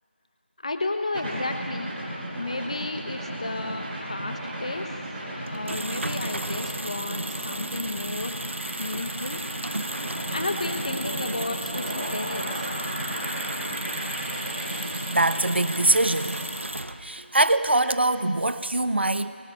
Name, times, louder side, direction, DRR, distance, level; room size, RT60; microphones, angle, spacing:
voice 1, 0.6-1.9 2.4-4.9 5.5-8.4 8.8-9.4 10.3-12.7, left 2 dB, 35° left, 6 dB, 1.1 m, -32 dB
sound 1, 1.1-16.5, right 1 dB, 10° right, 5.0 m, -34 dB
sound 2, 5.5-17.3, right 1 dB, 85° right, 1.3 m, -35 dB
voice 2, 15.1-16.4 17.0-19.3, right 2 dB, 65° right, 11 dB, 1.3 m, -23 dB
24.0 x 24.0 x 7.8 m, 2.4 s
figure-of-eight pair, 175°, 6 cm